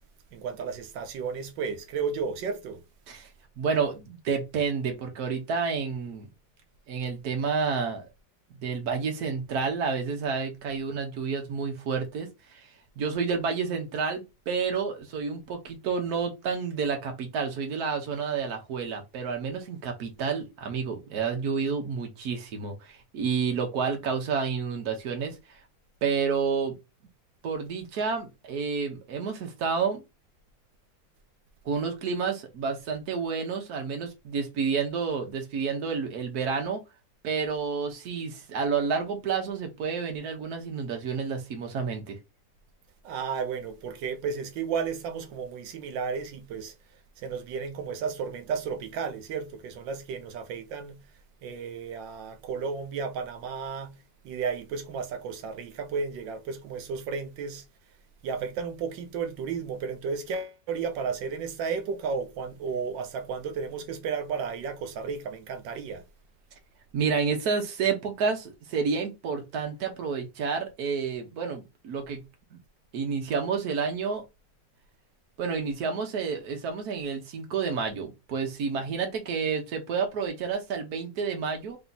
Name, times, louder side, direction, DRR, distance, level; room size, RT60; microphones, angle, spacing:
voice 1, 0.3-2.8 43.0-46.7 47.2-51.0 51.4-53.9 54.2-57.6 58.2-66.0, right 5 dB, 85° right, 1.4 m, -33 dB
voice 2, 3.6-6.3 6.9-8.1 8.6-12.7 13.0-25.6 26.0-26.8 27.4-30.0 31.6-36.8 37.2-42.2 66.9-72.2 72.5-72.6 72.9-74.2 75.4-81.8, right 5 dB, 60° right, 1.4 m, -30 dB
3.5 x 2.8 x 3.8 m
omnidirectional pair, 2.0 m